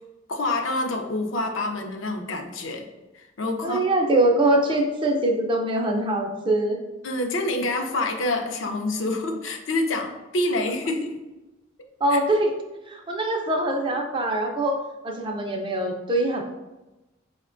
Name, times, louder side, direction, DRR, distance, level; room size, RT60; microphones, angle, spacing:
voice 1, 0.3-2.9 3.1-3.9 4.3-4.4 7.0-11.2 12.1-12.2, left 2 dB, 70° left, 3 dB, 0.5 m, -27 dB
voice 2, 3.6-6.8 12.0-12.5 12.9-16.4, right 1 dB, 25° right, 2 dB, 0.3 m, -23 dB
5.0 x 2.1 x 2.4 m, 1.1 s
head